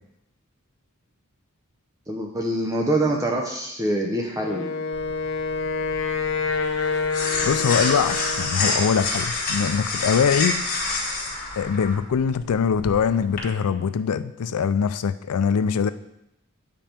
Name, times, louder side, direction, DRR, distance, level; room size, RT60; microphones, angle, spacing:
voice 1, 2.1-4.7, right 1 dB, 15° right, 0.7 m, -25 dB
Wind instrument woodwind instrument, 4.4-8.7, left 4 dB, 60° left, 0.8 m, -27 dB
sound 1, 4.9-13.4, left 3 dB, 40° left, 1.6 m, -28 dB
voice 2, 7.4-10.6 11.6-15.9, left 6 dB, 85° left, 0.4 m, -23 dB
8.4 x 5.3 x 4.4 m
head